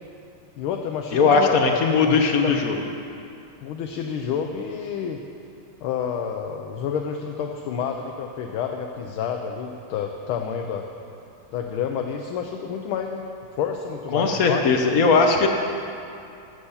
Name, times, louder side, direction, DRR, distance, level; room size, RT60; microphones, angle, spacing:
voice 1, 0.6-1.8 2.4-2.5 3.6-5.2 5.8-10.8 11.5-13.2 13.6-14.6, left 7 dB, 75° left, 3 dB, 1.5 m, -29 dB
voice 2, 1.1-2.8 14.1-15.5, left 4 dB, 55° left, 3 dB, 1.0 m, -19 dB
13.5 x 8.4 x 5.6 m, 2.6 s
omnidirectional pair, 2.4 m